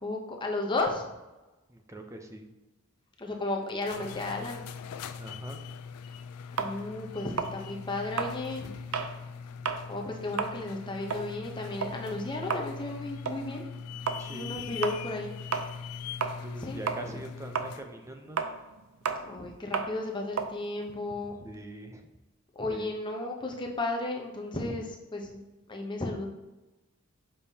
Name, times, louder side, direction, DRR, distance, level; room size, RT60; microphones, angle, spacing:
voice 1, 0.0-1.1 3.2-4.7 6.6-8.7 9.9-13.6 14.3-15.3 16.6-16.8 19.2-21.3 22.6-24.8 25.1-25.4 25.7-26.3, left 2 dB, 20° left, 1 dB, 0.8 m, -34 dB
voice 2, 1.7-2.5 5.2-5.6 14.2-14.6 16.4-18.4 21.4-22.1 22.6-23.0 24.5-24.8, right 1 dB, 15° right, 4 dB, 0.5 m, -43 dB
sound 1, 3.7-17.9, left 6 dB, 90° left, 0.4 m, -42 dB
sound 2, 6.6-9.2 9.5-9.9 10.2-16.6 16.9-21.6, right 5 dB, 70° right, 0.5 m, -34 dB
6.6 x 5.3 x 2.8 m, 1.1 s
head